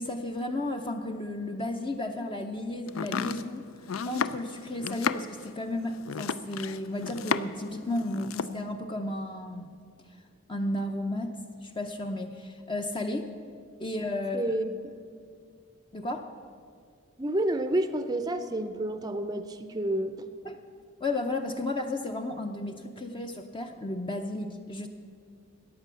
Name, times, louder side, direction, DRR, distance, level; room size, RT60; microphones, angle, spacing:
voice 1, 0.0-3.7 4.1-9.7 10.5-13.3 13.8-14.6 15.9-16.3 20.4-20.6 21.0-24.9, left 2 dB, 25° left, 5 dB, 0.6 m, -33 dB
Domestic sounds home sounds, 2.9-7.7 8.0-8.6, left 6 dB, 80° left, 0.5 m, -33 dB
voice 2, 14.3-14.7 17.2-20.3, right 1 dB, 20° right, 9 dB, 0.5 m, -29 dB
14.5 x 9.8 x 6.9 m, 2.2 s
head